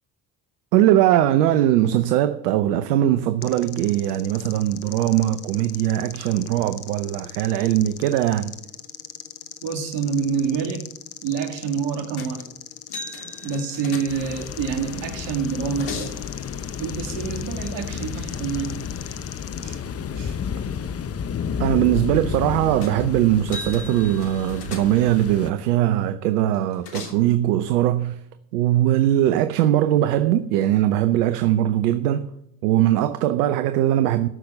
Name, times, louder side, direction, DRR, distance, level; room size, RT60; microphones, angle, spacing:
voice 1, 0.7-8.6 21.6-28.2 28.5-32.3 32.6-34.3, right 12 dB, 80° right, 0.8 m, -20 dB
sound 1, 3.4-19.8, left 12 dB, 80° left, 1.1 m, -40 dB
voice 2, 9.6-10.9 11.2-12.5 13.4-16.1 16.8-18.8 19.6-19.8 20.2-20.4, right 6 dB, 65° right, 2.4 m, -27 dB
sound 2, 12.2-12.5 12.9-14.5 15.3-16.2 22.8-23.1 23.4-25.2 26.5-27.3, left 3 dB, 55° left, 3.2 m, -38 dB
sound 3, 14.1-25.5, left 7 dB, 30° left, 1.0 m, -31 dB
14.0 x 6.1 x 6.6 m
hypercardioid pair, 65°, 46 cm